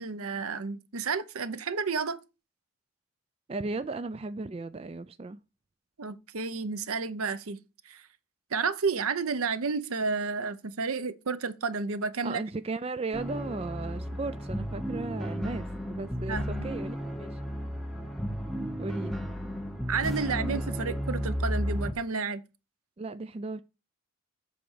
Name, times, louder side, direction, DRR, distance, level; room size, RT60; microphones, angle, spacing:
voice 1, 0.0-2.2 6.0-7.6 7.9-8.0 8.5-12.4 16.3-16.6 19.9-22.4, right 4 dB, 80° right, 0.8 m, -31 dB
voice 2, 3.5-5.4 12.2-17.3 18.8-19.2 23.0-23.6, right 3 dB, 25° right, 0.3 m, -36 dB
sound 1, 13.1-21.9, equal, ahead, 0.8 m, -33 dB
7.6 x 4.5 x 6.3 m
head